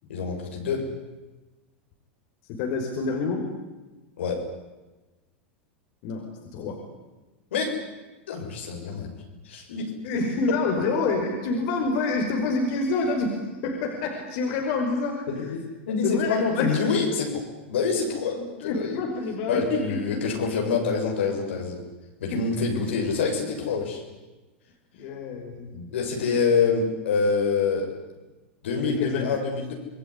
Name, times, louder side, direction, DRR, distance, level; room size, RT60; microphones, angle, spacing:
voice 1, 0.1-0.8 4.2-4.4 7.5-7.8 8.3-9.1 9.4-9.9 15.3-15.6 15.9-18.9 19.5-21.8 22.2-24.0 25.7-27.9 28.6-29.7, left 5 dB, 80° left, 1 dB, 7.1 m, -26 dB
voice 2, 2.5-3.5 6.0-6.8 10.0-15.5 16.0-16.8 18.6-20.2 22.3-22.8 24.9-26.4 28.8-29.4, left 3 dB, 60° left, 2 dB, 5.7 m, -28 dB
27.5 x 21.0 x 10.0 m, 1.1 s
hypercardioid pair, 95°, 6 cm